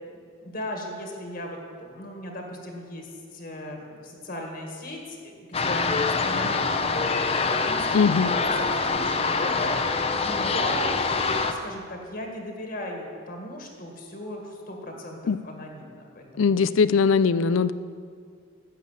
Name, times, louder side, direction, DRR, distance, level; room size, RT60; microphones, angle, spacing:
voice 1, 0.1-8.3 8.6-10.9 11.4-16.6, left 1 dB, 45° left, 2 dB, 1.8 m, -38 dB
sound 1, 5.5-11.5, left 4 dB, 30° left, 0.7 m, -25 dB
voice 2, 7.9-8.3 15.3-15.4 16.4-17.7, left 5 dB, 85° left, 15 dB, 0.5 m, -20 dB
12.5 x 8.4 x 7.3 m, 2.1 s
head